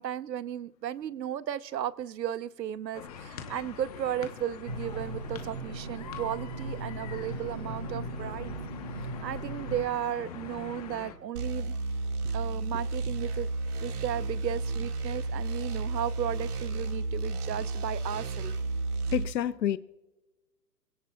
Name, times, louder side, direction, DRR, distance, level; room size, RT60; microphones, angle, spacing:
voice 1, 0.0-8.6 9.2-11.7 12.3-13.5 13.8-18.5, right 10 dB, 80° right, 0.9 m, -35 dB
sound 1, 2.9-11.1, left 7 dB, 25° left, 1.1 m, -44 dB
sound 2, 4.7-9.8, right 2 dB, 25° right, 0.5 m, -38 dB
sound 3, 11.4-19.2, right 3 dB, 65° right, 2.1 m, -32 dB
voice 2, 19.1-19.8, left 10 dB, 85° left, 0.8 m, -28 dB
21.0 x 17.0 x 2.4 m
hypercardioid pair, 165°, 50 cm